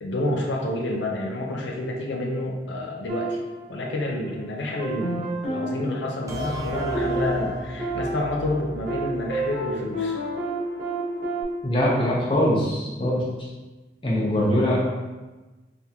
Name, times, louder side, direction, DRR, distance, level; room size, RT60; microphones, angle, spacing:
voice 1, 0.0-3.4 3.7-10.2, left 1 dB, 85° left, 0 dB, 0.5 m, -29 dB
sound 1, 3.1-4.3 4.8-11.4, right 2 dB, 45° right, 1.3 m, -30 dB
sound 2, 6.3-9.8, equal, 20° right, 0.4 m, -35 dB
voice 2, 11.6-13.5 14.0-14.9, left 1 dB, 30° left, -5 dB, 0.8 m, -22 dB
3.5 x 3.4 x 2.9 m, 1.2 s
head